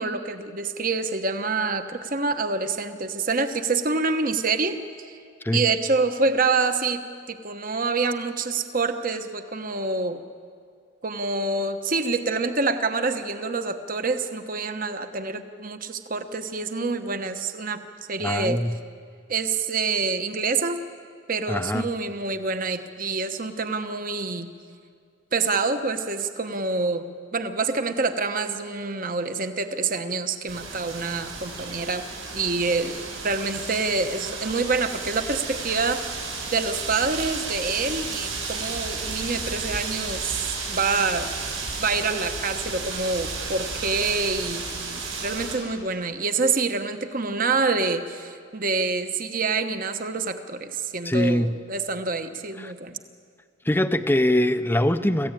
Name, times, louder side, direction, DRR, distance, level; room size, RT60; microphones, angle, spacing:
voice 1, 0.0-4.8 5.5-10.2 11.0-17.8 18.1-18.6 19.3-20.8 21.3-24.5 25.3-32.0 32.3-32.9 33.2-36.0 36.5-41.3 41.8-53.0, right 4 dB, 40° right, 8 dB, 1.1 m, -26 dB
voice 2, 18.2-18.8 21.5-21.9 51.0-51.6 52.6-52.7 53.6-55.3, left 1 dB, 10° left, 10 dB, 0.6 m, -23 dB
sound 1, 30.5-45.6, right 4 dB, 80° right, 7.5 m, -33 dB
26.5 x 15.5 x 9.1 m, 2.3 s
head